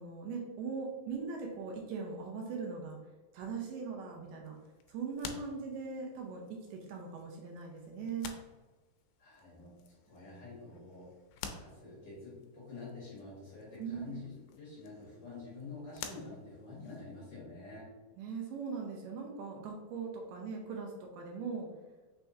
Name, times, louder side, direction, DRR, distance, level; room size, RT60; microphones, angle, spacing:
voice 1, 0.0-3.0 3.3-4.6 4.9-8.3 10.3-10.4 13.8-14.2 18.2-21.7, right 5 dB, 80° right, 1 dB, 2.1 m, -40 dB
sound 1, 4.4-17.3, left 7 dB, 85° left, 2.3 m, -51 dB
voice 2, 9.2-11.1 11.6-17.9, left 3 dB, 50° left, -7 dB, 2.1 m, -48 dB
5.6 x 3.4 x 2.7 m, 1.3 s
omnidirectional pair, 4.0 m